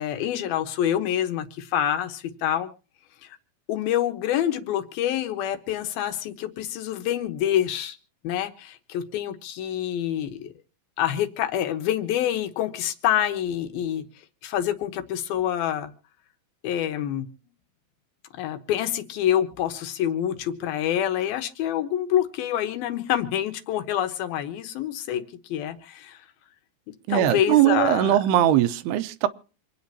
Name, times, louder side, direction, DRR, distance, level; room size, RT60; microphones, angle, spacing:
voice 1, 0.0-2.7 3.2-3.3 3.7-8.0 8.2-10.5 11.0-14.0 14.4-15.9 16.6-17.2 18.3-25.2 25.5-26.2 27.1-28.2, left 11 dB, 75° left, 2.9 m, -26 dB
voice 2, 27.1-29.3, right 12 dB, 85° right, 2.8 m, -20 dB
26.5 x 9.4 x 2.8 m
omnidirectional pair, 4.6 m